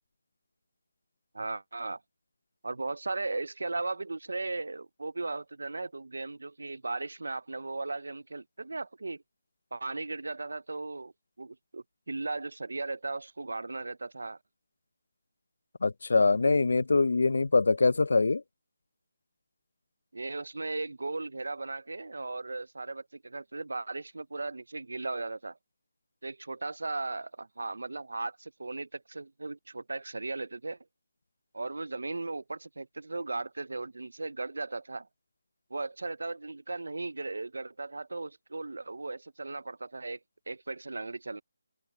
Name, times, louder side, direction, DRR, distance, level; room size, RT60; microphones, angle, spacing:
voice 1, 1.3-2.0 2.6-9.2 9.7-11.1 11.4-14.4 20.1-25.6 26.2-30.8 31.5-35.1 35.7-40.2 40.5-41.4, right 3 dB, 85° right, 0.7 m, -37 dB
voice 2, 15.8-18.4, left 3 dB, 75° left, 0.7 m, -24 dB
figure-of-eight pair, 165°, 0 cm